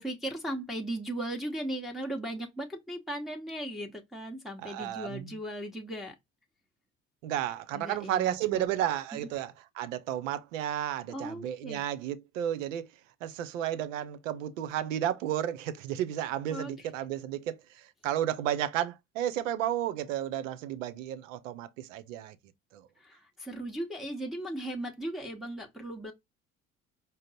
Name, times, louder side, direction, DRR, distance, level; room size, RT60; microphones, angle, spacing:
voice 1, 0.0-6.1 7.7-8.7 9.1-9.2 11.1-11.8 16.5-16.9 23.0-26.1, right 1 dB, ahead, 1.0 m, -37 dB
voice 2, 4.6-5.3 7.2-12.9 13.2-22.4 22.7-22.9, right 11 dB, 80° right, 0.6 m, -32 dB
5.0 x 2.0 x 4.0 m
hypercardioid pair, 60°, 38 cm